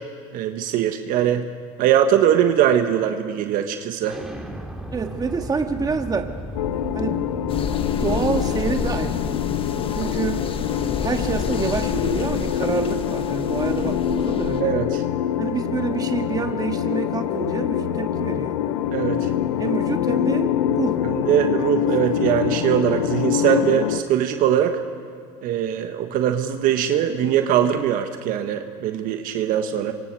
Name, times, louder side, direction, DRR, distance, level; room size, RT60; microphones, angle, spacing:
voice 1, 0.3-1.4 1.8-4.2 14.6-15.0 18.9-19.3 21.0-24.8 25.4-29.9, right 10 dB, 60° right, 6 dB, 1.4 m, -21 dB
Explosion, 4.0-9.5, right 1 dB, ahead, 2.9 m, -36 dB
voice 2, 4.9-6.4 6.9-7.3 8.0-9.4 9.9-10.5 11.0-14.8 15.4-18.6 19.6-21.7 22.0-22.1, right 5 dB, 25° right, 5 dB, 2.0 m, -27 dB
sound 1, 6.6-24.0, left 10 dB, 90° left, 0.8 m, -25 dB
sound 2, 7.5-14.6, left 5 dB, 35° left, 1.4 m, -29 dB
27.0 x 25.0 x 4.8 m, 2.2 s
supercardioid pair, 90°, 16 cm